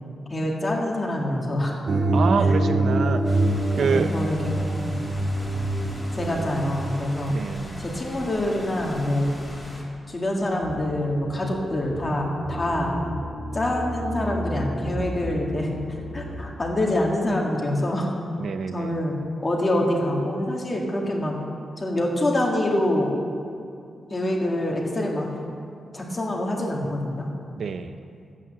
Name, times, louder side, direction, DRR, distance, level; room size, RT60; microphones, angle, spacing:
voice 1, 0.3-1.8 3.1-3.3 3.7-5.0 6.1-7.4 7.8-9.3 10.1-13.0 13.5-15.7 16.1-18.1 18.7-21.4 21.8-23.1 24.1-25.3 25.9-27.3, left 1 dB, 25° left, -1 dB, 1.9 m, -25 dB
sound 1, 1.9-6.9, right 2 dB, 40° right, 0.9 m, -24 dB
voice 2, 2.1-3.2 3.8-4.1 7.3-7.8 18.4-18.9 27.6-27.9, right 5 dB, 65° right, 8 dB, 0.5 m, -26 dB
sound 2, 3.2-9.8, left 1 dB, 10° left, 2.7 m, -40 dB
sound 3, 10.6-16.5, equal, 85° right, 3.9 m, -34 dB
12.0 x 8.5 x 7.6 m, 2.4 s
wide cardioid pair, 150°, 0 cm